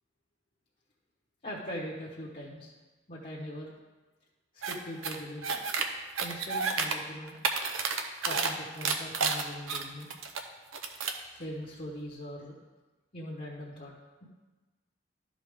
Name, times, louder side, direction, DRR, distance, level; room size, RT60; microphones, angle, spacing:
voice 1, 1.4-2.7 3.1-3.7 4.7-5.6 6.2-7.4 8.2-10.1 11.3-12.6 13.1-13.9, equal, 35° left, -6 dB, 1.1 m, -41 dB
sound 1, 4.6-4.7 5.0-5.8 6.2-6.9 7.3-8.5 8.8-10.4 10.7-11.2, right 5 dB, 85° right, 0.7 m, -30 dB
12.5 x 5.0 x 3.6 m, 1.2 s
head